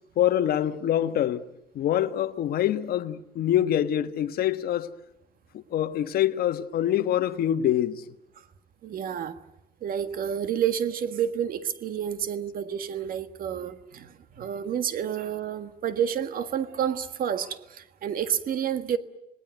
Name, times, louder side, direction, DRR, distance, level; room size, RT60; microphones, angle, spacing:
voice 1, 0.2-1.5 1.7-4.9 5.5-8.0, left 11 dB, 65° left, 1.3 m, -25 dB
voice 2, 8.8-9.4 9.8-19.0, right 9 dB, 60° right, 1.7 m, -29 dB
27.0 x 19.0 x 9.3 m
cardioid pair, 110°, 17 cm